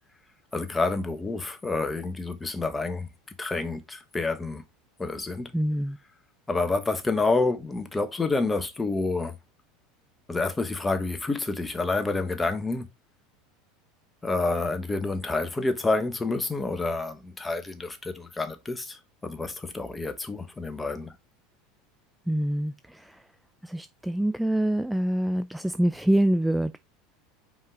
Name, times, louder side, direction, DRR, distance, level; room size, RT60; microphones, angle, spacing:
voice 1, 0.5-3.1 3.4-4.6 5.0-5.5 6.5-9.4 10.3-12.9 14.2-21.1, left 3 dB, 15° left, 1.2 m, -28 dB
voice 2, 5.5-6.0 22.3-23.2 23.6-26.8, right 1 dB, 5° right, 0.4 m, -25 dB
5.5 x 4.8 x 3.7 m
hypercardioid pair, 80°, 0 cm